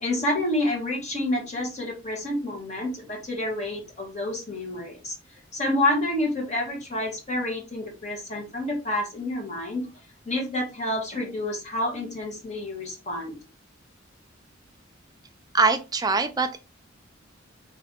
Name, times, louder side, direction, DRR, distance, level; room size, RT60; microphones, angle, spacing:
voice 1, 0.0-5.1 5.5-9.8 10.2-13.3, left 1 dB, 35° left, 1.4 m, -28 dB
voice 2, 15.5-16.6, right 4 dB, 20° right, 0.5 m, -23 dB
3.4 x 2.7 x 3.7 m
head